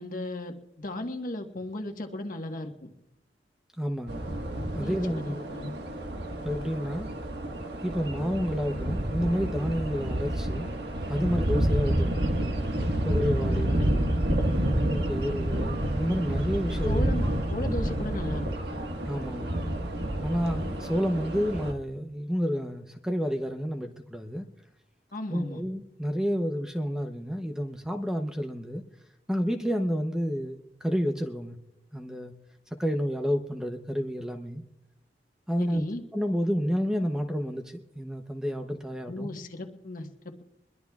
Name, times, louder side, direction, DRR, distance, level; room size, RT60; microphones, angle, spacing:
voice 1, 0.0-2.9 4.7-5.8 13.5-14.1 16.8-18.5 25.1-25.6 35.6-36.0 39.1-40.1, left 1 dB, 50° left, 1.4 m, -36 dB
voice 2, 3.8-4.3 4.8-5.4 6.4-7.1 7.8-10.7 11.1-12.3 13.0-13.8 14.9-17.1 19.0-19.5 20.2-24.5 25.3-28.8 29.3-31.6 31.9-32.3 32.8-34.6 35.5-35.8 36.1-39.3, equal, 5° right, 0.7 m, -30 dB
sound 1, 4.1-21.7, right 1 dB, 70° right, 1.5 m, -29 dB
22.5 x 21.5 x 2.4 m
head